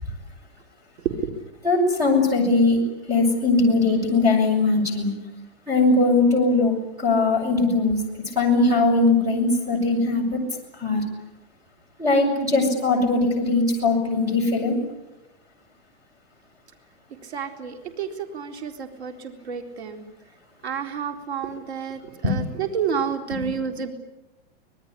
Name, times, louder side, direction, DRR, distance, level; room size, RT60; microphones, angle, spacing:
voice 1, 1.6-2.8 3.1-5.1 5.7-8.0 8.3-10.4 10.8-11.0 12.0-14.8 22.2-22.4, left 3 dB, 10° right, 2 dB, 6.4 m, -20 dB
voice 2, 17.2-20.1 20.6-23.9, right 7 dB, 85° right, 6 dB, 4.0 m, -30 dB
26.0 x 20.0 x 9.9 m, 0.96 s
supercardioid pair, 175°, 32 cm